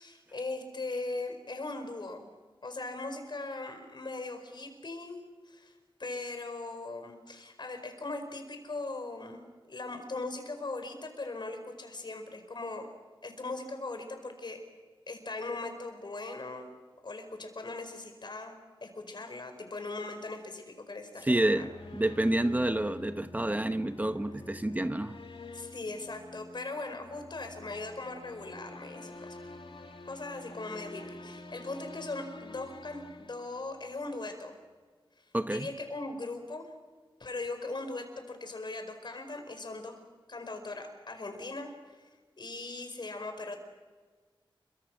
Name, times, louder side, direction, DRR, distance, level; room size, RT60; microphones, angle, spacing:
voice 1, 0.0-2.3 2.6-5.7 6.0-12.9 13.2-14.6 15.1-16.7 17.0-21.6 25.5-29.4 30.1-34.6 35.5-36.7 37.2-40.0 40.3-42.0 42.4-43.6, left 2 dB, 55° left, 5.0 m, -39 dB
sound 1, 21.2-34.1, left 2 dB, 75° left, 2.3 m, -48 dB
voice 2, 21.2-25.1 35.3-35.7, right 1 dB, 20° right, 0.9 m, -29 dB
29.0 x 24.0 x 6.4 m
wide cardioid pair, 105°, 9 cm